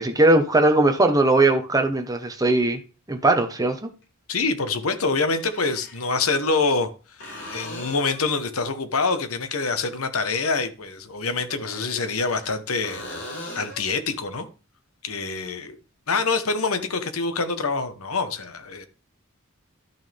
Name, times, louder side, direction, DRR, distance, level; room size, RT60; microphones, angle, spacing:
voice 1, 0.0-2.8 3.1-3.9, right 2 dB, 15° right, 1.1 m, -19 dB
sound 1, 1.9-2.0 4.0-4.1 5.4-6.1 7.2-8.3 11.5-12.5 12.8-13.9 17.5-17.6, left 1 dB, 60° left, 4.3 m, -39 dB
voice 2, 4.3-6.9 7.2-13.3 13.5-14.5 15.0-15.8 16.1-18.9, left 4 dB, 80° left, 1.2 m, -26 dB
12.0 x 6.2 x 3.5 m
head